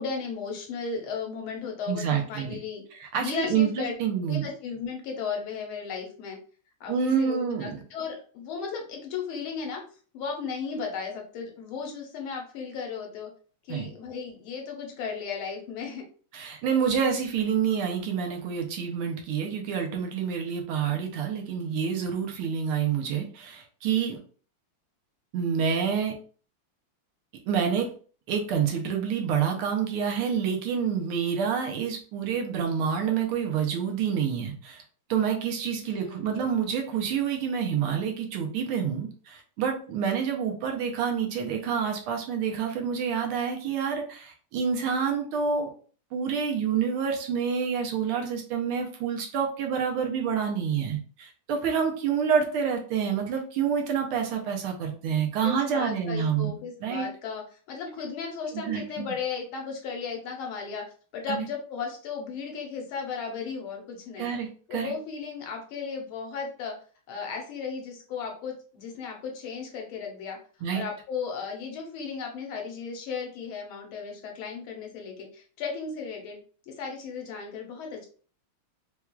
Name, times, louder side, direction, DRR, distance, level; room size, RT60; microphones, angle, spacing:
voice 1, 0.0-2.8 3.2-3.9 4.3-6.4 6.8-9.8 10.1-13.3 13.7-16.0 35.9-36.3 55.4-60.8 61.1-64.3 64.7-66.8 67.1-70.4 70.7-76.4 76.7-78.1, left 5 dB, 75° left, 2 dB, 1.6 m, -35 dB
voice 2, 1.9-2.6 2.9-4.5 6.9-7.8 13.7-13.9 16.3-24.2 25.3-26.2 27.5-27.9 28.3-34.8 35.1-45.7 46.1-57.1 58.5-59.1 61.3-61.4 64.2-64.9 70.6-70.8, right 7 dB, 80° right, 3 dB, 1.6 m, -28 dB
4.5 x 2.3 x 2.2 m, 0.41 s
omnidirectional pair, 2.4 m